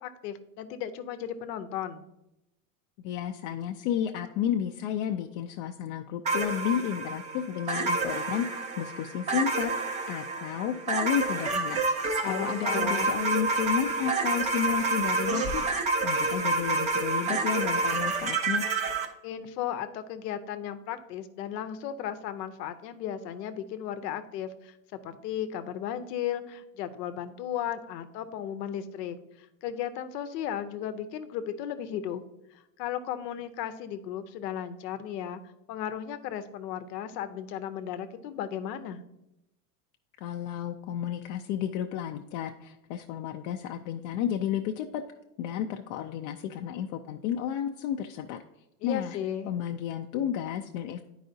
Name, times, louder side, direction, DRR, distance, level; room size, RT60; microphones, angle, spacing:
voice 1, 0.0-2.0 12.2-13.1 19.2-32.2 32.5-35.4 35.7-39.0 48.8-49.5, left 10 dB, 85° left, 11 dB, 0.8 m, -35 dB
voice 2, 3.0-9.7 10.1-15.6 16.0-18.6 40.2-45.0 45.4-48.4 48.8-49.2 49.4-51.0, left 9 dB, 55° left, 4 dB, 0.5 m, -32 dB
sound 1, 6.2-19.1, right 3 dB, 15° right, 0.3 m, -29 dB
10.0 x 4.8 x 2.7 m, 0.88 s
supercardioid pair, 135°, 48 cm